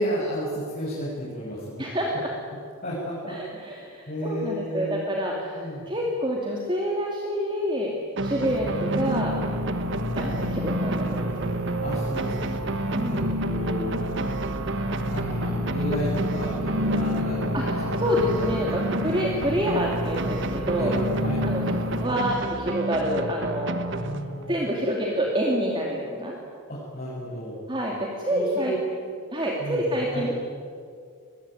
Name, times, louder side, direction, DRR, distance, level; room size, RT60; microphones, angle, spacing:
voice 1, 0.0-1.8 2.8-3.3 4.1-5.0 5.5-5.9 8.4-8.6 11.8-12.5 13.0-13.9 15.1-19.5 20.7-21.4 24.0-24.5 26.7-27.6 28.3-28.8 29.6-29.8 30.1-30.3, equal, 40° left, -8 dB, 7.0 m, -32 dB
voice 2, 1.8-2.3 3.2-7.9 8.2-9.3 10.1-11.5 12.9-13.3 17.5-20.9 21.4-23.8 24.5-26.4 27.7-28.7 29.3-30.3, equal, 20° right, -2 dB, 2.7 m, -27 dB
sound 1, 8.2-24.7, right 2 dB, 55° right, 1.4 m, -31 dB
sound 2, 8.4-22.1, equal, 75° right, 3.5 m, -30 dB
25.5 x 21.0 x 9.3 m, 2.2 s
head